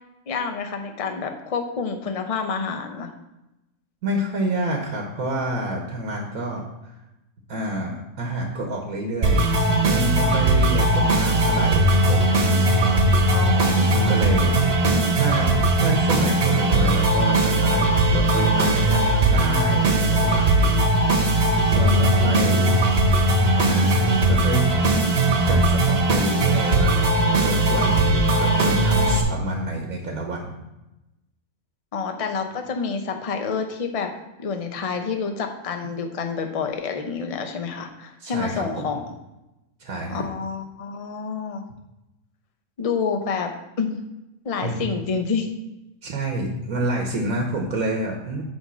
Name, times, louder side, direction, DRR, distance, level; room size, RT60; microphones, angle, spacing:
voice 1, 0.3-3.1 13.3-14.6 21.7-22.7 31.9-34.1 34.4-39.0 40.1-41.6 42.8-43.5 43.8-44.0 44.4-45.5, left 5 dB, 35° left, 5 dB, 0.6 m, -28 dB
voice 2, 4.0-6.9 7.5-9.5 9.9-12.3 13.9-14.5 15.1-20.8 21.7-22.8 23.6-24.6 25.5-27.1 27.4-30.5 38.2-38.8 39.8-40.3 44.6-44.8 46.0-48.4, right 1 dB, 70° right, 1 dB, 1.4 m, -28 dB
sound 1, 9.2-29.2, right 1 dB, 45° right, 1.3 m, -19 dB
8.6 x 3.7 x 6.1 m, 0.95 s
omnidirectional pair, 1.6 m